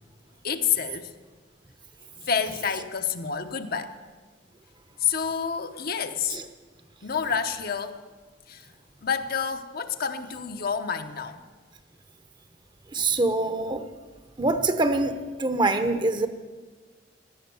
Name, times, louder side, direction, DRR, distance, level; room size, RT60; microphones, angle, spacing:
voice 1, 0.4-1.1 2.2-4.0 5.0-6.4 7.0-8.0 8.5-8.7 9.0-11.4, left 7 dB, 55° left, 7 dB, 0.9 m, -28 dB
voice 2, 12.9-13.9 14.4-16.3, right 2 dB, 25° right, 9 dB, 0.9 m, -24 dB
16.5 x 11.5 x 7.0 m, 1.4 s
head